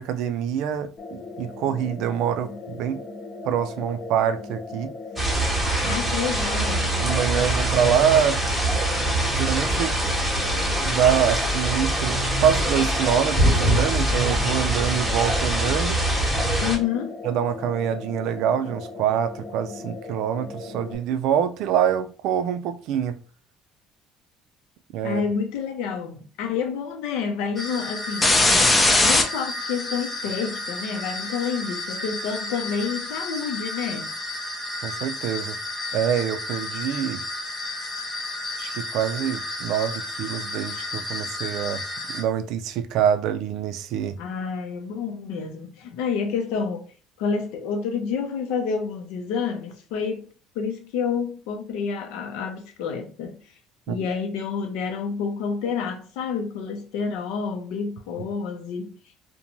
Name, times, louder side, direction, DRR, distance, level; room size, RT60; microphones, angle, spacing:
voice 1, 0.0-3.0 3.4-4.9 5.8-5.9 7.0-8.4 9.3-9.9 10.5-16.0 17.2-23.2 24.9-25.2 34.8-35.6 35.9-37.2 38.6-41.8 42.1-44.2 53.9-54.0, right 9 dB, 70° right, 0.3 m, -25 dB
sound 1, 1.0-20.9, left 3 dB, 45° left, 0.8 m, -38 dB
sound 2, 5.2-16.8, right 1 dB, 5° right, 0.9 m, -23 dB
voice 2, 5.8-6.9 16.6-17.2 25.0-34.1 44.2-46.9 47.2-50.3 50.5-53.5 53.9-58.9, left 6 dB, 85° left, 0.6 m, -29 dB
sound 3, 27.6-42.2, left 2 dB, 15° left, 0.4 m, -27 dB
2.5 x 2.2 x 2.9 m
cardioid pair, 125°, 0 cm